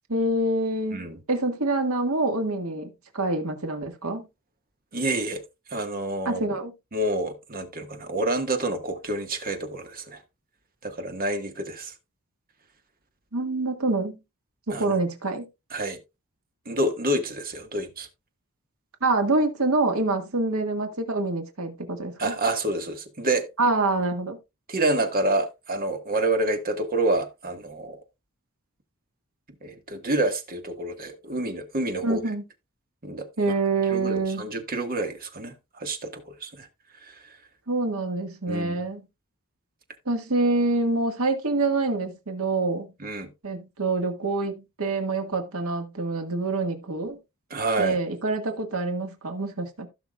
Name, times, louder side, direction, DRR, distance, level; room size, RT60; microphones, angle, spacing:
voice 1, 0.1-4.3 6.3-6.7 13.3-14.2 14.7-15.5 19.0-22.3 23.6-24.4 32.0-32.4 33.4-34.5 37.7-39.0 40.1-42.9 43.4-47.2 47.8-49.9, right 2 dB, 70° right, 1.7 m, -26 dB
voice 2, 4.9-5.4 5.7-6.5 6.9-10.2 10.8-11.9 14.7-15.0 15.7-16.0 16.6-18.1 22.2-23.5 24.7-28.0 29.6-32.2 33.0-33.3 33.9-36.7 37.0-37.4 38.5-38.8 43.0-43.3 47.5-48.0, right 2 dB, 40° right, 1.6 m, -28 dB
16.0 x 6.0 x 2.4 m
head